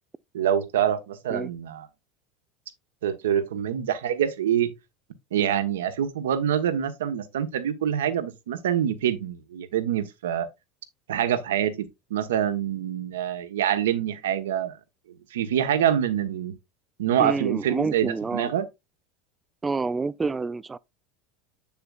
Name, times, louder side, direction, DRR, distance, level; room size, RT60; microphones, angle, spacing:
voice 1, 0.3-1.9 3.0-4.7 5.3-10.5 11.1-14.8 15.3-16.5 17.0-18.6, right 9 dB, 70° right, 1.1 m, -25 dB
voice 2, 17.2-18.5 19.6-20.8, right 4 dB, 15° right, 0.4 m, -28 dB
8.0 x 7.0 x 2.4 m
figure-of-eight pair, 75°, 0 cm